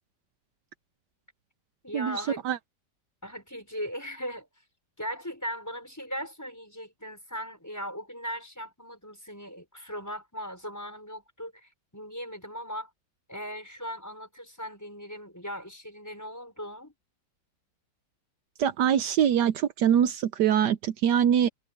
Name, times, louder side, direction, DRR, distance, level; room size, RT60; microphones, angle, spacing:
voice 1, 1.8-2.4 3.2-4.5 5.0-12.9 13.3-16.9, equal, 10° left, 5.8 m, -38 dB
voice 2, 18.6-21.5, right 9 dB, 75° right, 1.3 m, -23 dB
omnidirectional pair, 1.9 m